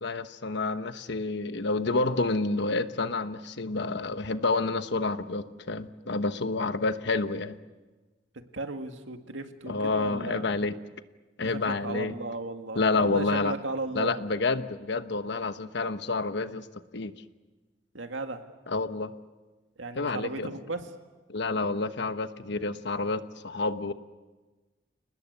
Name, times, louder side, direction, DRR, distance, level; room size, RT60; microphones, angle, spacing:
voice 1, 0.0-7.6 9.7-10.7 11.4-12.1 12.7-13.5 13.9-16.7 16.9-17.1 18.7-19.1 20.0-20.5 21.3-23.9, left 3 dB, 65° left, 10 dB, 1.1 m, -29 dB
voice 2, 8.5-10.5 11.4-14.2 17.9-18.4 19.8-20.9, right 2 dB, 85° right, 6 dB, 2.0 m, -36 dB
29.5 x 19.5 x 8.2 m, 1.3 s
head